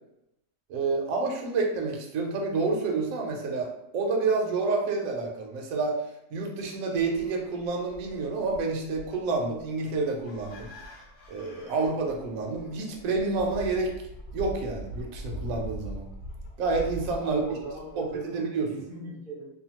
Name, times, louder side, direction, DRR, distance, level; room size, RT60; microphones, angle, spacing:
voice 1, 0.7-3.7 3.9-6.0 6.3-10.7 11.3-13.9 14.3-16.1 16.6-17.4 18.0-18.7, right 3 dB, 65° right, 1 dB, 0.9 m, -29 dB
sound 1, 6.9-18.3, right 1 dB, 70° left, 0.7 m, -42 dB
voice 2, 17.2-19.5, right 2 dB, 40° right, -6 dB, 0.7 m, -39 dB
2.7 x 2.3 x 2.9 m, 0.84 s
omnidirectional pair, 1.7 m